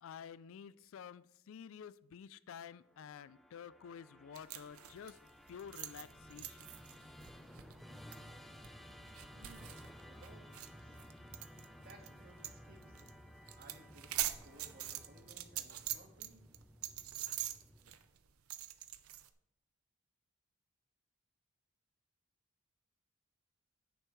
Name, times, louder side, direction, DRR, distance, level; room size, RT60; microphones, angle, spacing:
voice 1, 0.0-5.1 5.5-6.6, left 7 dB, 65° left, 18 dB, 0.3 m, -51 dB
Musical instrument, 2.9-18.2, equal, ahead, 0.6 m, -56 dB
sound 1, 4.3-12.1 12.4-12.6 12.8-13.1 13.4-16.3 16.5-19.3, right 13 dB, 80° right, 0.6 m, -43 dB
voice 2, 9.3-11.0 11.8-13.2 13.6-16.5, right 2 dB, 50° right, 2 dB, 1.7 m, -61 dB
10.0 x 8.9 x 3.1 m, 0.78 s
head